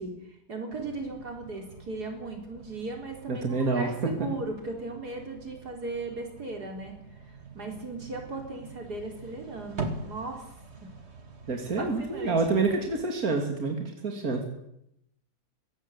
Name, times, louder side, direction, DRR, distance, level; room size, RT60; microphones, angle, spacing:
voice 1, 0.0-10.5 10.8-10.9 11.8-12.4, right 3 dB, 85° right, 2 dB, 4.4 m, -37 dB
sound 1, 0.7-13.0, right 3 dB, 45° right, 2.4 m, -44 dB
voice 2, 3.3-4.1 11.5-14.4, right 3 dB, 65° right, 3 dB, 3.2 m, -27 dB
22.5 x 17.5 x 8.2 m, 0.80 s
omnidirectional pair, 1.7 m